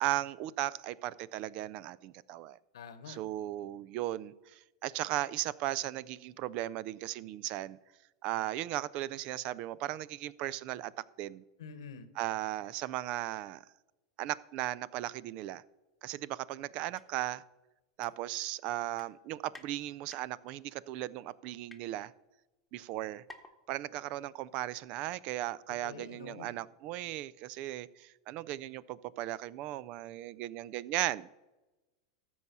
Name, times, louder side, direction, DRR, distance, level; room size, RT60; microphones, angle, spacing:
voice 1, 0.0-2.6 3.1-7.8 8.2-10.9 11.2-11.4 12.2-13.6 14.2-15.6 16.0-17.4 18.0-22.1 22.7-23.2 23.7-31.3, right 14 dB, 50° right, 21 dB, 0.4 m, -36 dB
voice 2, 2.7-3.2 11.6-12.1 25.8-26.5, left 5 dB, 85° left, 12 dB, 1.1 m, -47 dB
sound 1, 16.9-17.1 17.4-17.5 18.0-18.6 18.9-19.7 20.1-20.6 21.2-21.8 22.5-22.6 22.8-22.9 23.3-23.6 23.9-24.0, left 2 dB, 5° left, 1.2 m, -53 dB
13.5 x 4.8 x 6.8 m, 1.1 s
hypercardioid pair, 115°, 2 cm